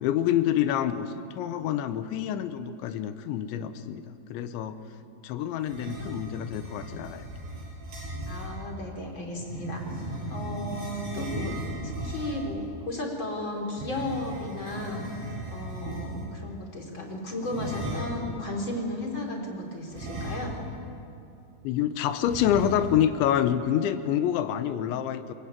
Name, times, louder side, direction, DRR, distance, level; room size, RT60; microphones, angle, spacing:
voice 1, 0.0-4.8 5.2-7.3 21.6-25.3, left 10 dB, 80° left, 10 dB, 3.3 m, -27 dB
sound 1, 5.6-8.5 9.4-12.5 13.7-16.4 17.4-18.3 19.9-20.8 21.1-21.2 22.2-23.1, right 1 dB, 75° right, 9.5 m, -36 dB
voice 2, 8.3-9.8 10.3-11.6 11.8-15.1 15.5-20.5, left 1 dB, 25° left, 0 dB, 4.0 m, -34 dB
26.0 x 23.0 x 9.2 m, 2.6 s
omnidirectional pair, 5.5 m